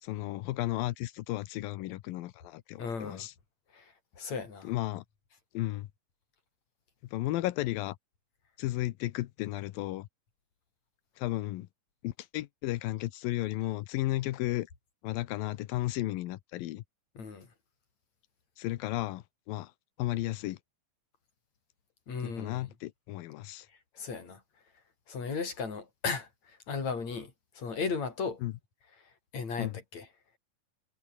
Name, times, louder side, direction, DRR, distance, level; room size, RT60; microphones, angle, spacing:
voice 1, 0.0-3.3 4.6-5.0 5.5-5.9 7.1-8.0 8.6-10.1 11.2-11.7 12.0-14.7 15.0-16.8 18.6-19.7 20.0-20.6 22.2-23.7 28.4-28.5 29.6-29.7, left 16 dB, 85° left, 2.7 m, -34 dB
voice 2, 2.8-3.3 3.7-4.7 17.2-17.5 22.1-22.7 24.0-24.4 25.1-28.4 29.3-30.1, left 5 dB, 50° left, 5.9 m, -36 dB
omnidirectional pair, 4.1 m